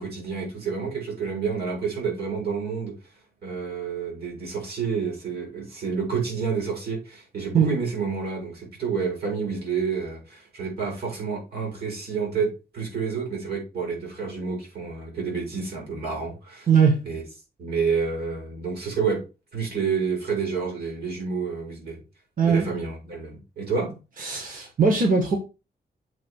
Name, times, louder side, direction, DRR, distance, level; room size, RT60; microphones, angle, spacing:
voice 1, 0.0-2.9 3.4-16.7 17.0-17.2 17.6-19.2 19.5-22.0 22.4-23.9, right 5 dB, 75° right, 5.5 m, -29 dB
voice 2, 16.7-17.0 22.4-22.7 24.2-25.4, right 5 dB, 55° right, 1.8 m, -20 dB
7.6 x 4.0 x 6.4 m
wide cardioid pair, 155°, 17 cm